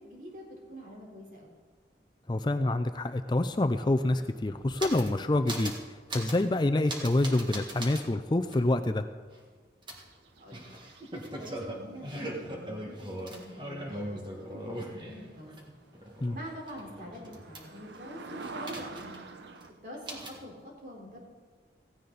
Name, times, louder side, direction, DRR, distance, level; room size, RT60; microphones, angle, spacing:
voice 1, 0.0-1.6 10.4-10.7 11.4-15.8 16.3-19.2 19.8-21.2, equal, 50° right, -2 dB, 3.9 m, -45 dB
voice 2, 2.3-5.7 6.1-9.0 16.2-16.3, left 2 dB, 25° left, 8 dB, 0.4 m, -27 dB
sound 1, 3.8-5.2 5.5-5.8 6.1-6.4 6.9-8.0 8.5-8.6 9.9-15.6 15.9-18.0 18.4-19.3 19.6-19.7 20.1-20.4, right 1 dB, 25° right, 1.7 m, -40 dB
sound 2, 10.0-11.5 15.0-15.1 15.6-15.7 15.9-19.7, right 3 dB, 85° right, 1.0 m, -45 dB
16.0 x 16.0 x 4.0 m, 1.5 s
head